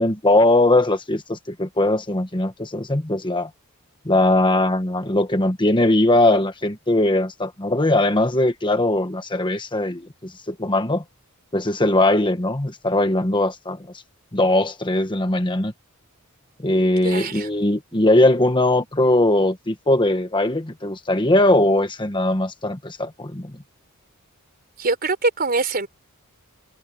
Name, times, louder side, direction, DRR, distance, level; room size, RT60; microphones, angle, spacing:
voice 1, 0.0-3.5 4.0-11.0 11.5-13.8 14.3-15.7 16.6-23.5, left 1 dB, 20° left, 1.3 m, -20 dB
voice 2, 17.0-17.5 24.8-25.9, right 3 dB, 45° right, 4.2 m, -23 dB
head